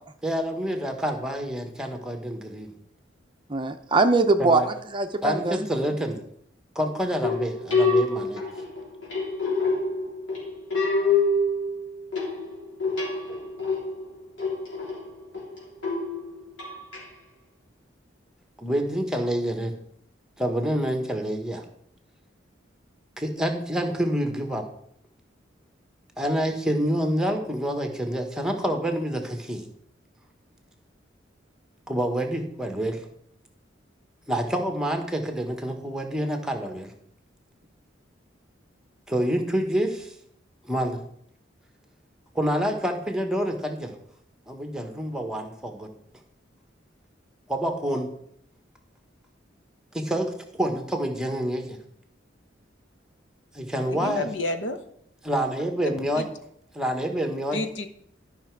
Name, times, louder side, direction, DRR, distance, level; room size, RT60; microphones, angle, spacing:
voice 1, 0.2-2.7 4.4-4.7 5.2-6.2 6.7-8.4 18.6-19.7 20.4-21.6 23.2-24.6 26.2-29.7 31.9-33.0 34.3-36.9 39.1-40.1 40.7-41.0 42.3-44.0 44.5-45.9 47.5-48.1 49.9-50.3 50.6-51.8 53.5-54.3 55.2-56.3 56.7-57.6, equal, 5° right, 4 dB, 1.2 m, -27 dB
voice 2, 3.5-5.7, right 3 dB, 25° right, 7 dB, 0.6 m, -22 dB
sound 1, 7.2-17.0, left 3 dB, 90° left, 3.4 m, -27 dB
voice 3, 53.9-54.8 56.2-56.3 57.5-57.9, left 2 dB, 75° left, 7 dB, 1.1 m, -29 dB
12.0 x 5.8 x 4.6 m, 0.69 s
head